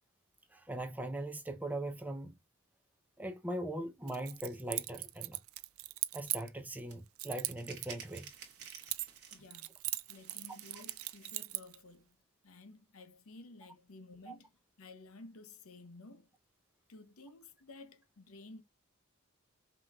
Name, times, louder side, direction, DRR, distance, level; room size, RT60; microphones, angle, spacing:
voice 1, 0.5-2.4 3.2-5.4 6.1-8.3 14.3-14.4, right 1 dB, 5° right, 0.6 m, -40 dB
Keys jangling, 4.1-6.8 7.2-9.3 9.5-11.8, right 18 dB, 75° right, 0.4 m, -39 dB
sound 1, 6.9-7.0 7.4-9.6 10.0-11.5, right 7 dB, 50° right, 1.4 m, -52 dB
voice 2, 9.3-9.8 10.1-12.2 12.4-16.3 16.9-18.6, left 2 dB, 75° left, 0.8 m, -54 dB
5.5 x 2.9 x 2.3 m
head